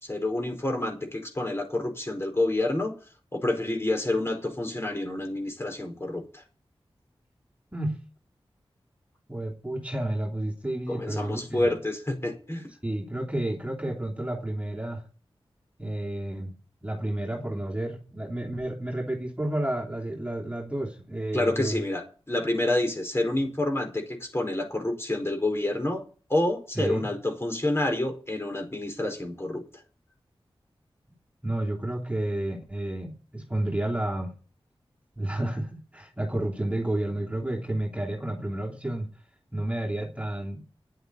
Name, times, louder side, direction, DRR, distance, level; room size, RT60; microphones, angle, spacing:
voice 1, 0.0-2.9 3.3-6.4 10.9-12.6 21.3-26.0 26.3-29.6, left 1 dB, 25° left, 4 dB, 4.9 m, -28 dB
voice 2, 9.3-11.7 12.8-15.1 15.8-16.5 16.8-21.8 26.7-27.1 31.4-34.3 35.2-39.1 39.5-40.6, right 1 dB, 15° right, -1 dB, 3.2 m, -31 dB
10.5 x 8.0 x 9.9 m, 0.37 s
wide cardioid pair, 65°, 10 cm